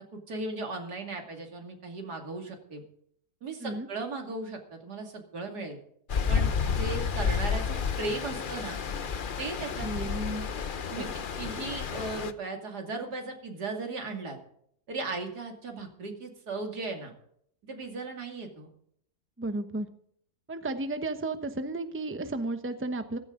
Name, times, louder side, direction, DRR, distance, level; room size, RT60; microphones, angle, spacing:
voice 1, 0.1-2.8 3.4-5.8 6.3-8.8 9.4-9.9 10.9-14.4 14.9-17.1 17.6-18.7, right 3 dB, 90° right, 3 dB, 3.1 m, -37 dB
Stream, 6.1-12.3, left 6 dB, 40° left, 0.8 m, -31 dB
voice 2, 9.8-10.5 10.9-11.1 19.4-19.9 20.5-23.2, right 2 dB, 10° right, 8 dB, 0.9 m, -33 dB
15.5 x 15.0 x 3.9 m, 0.67 s
omnidirectional pair, 1.7 m